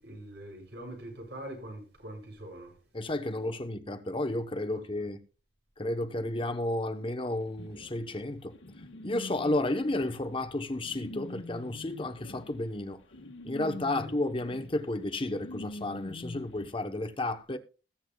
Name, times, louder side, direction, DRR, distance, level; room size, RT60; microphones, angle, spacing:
voice 1, 0.0-2.8 4.7-5.1 13.9-14.1, right 1 dB, 65° right, 7.5 m, -44 dB
voice 2, 2.9-5.2 5.8-8.5 9.0-13.0 13.4-17.6, left 2 dB, 30° left, 0.9 m, -32 dB
sound 1, 7.6-16.7, left 1 dB, 85° left, 1.4 m, -45 dB
20.5 x 8.5 x 2.3 m
head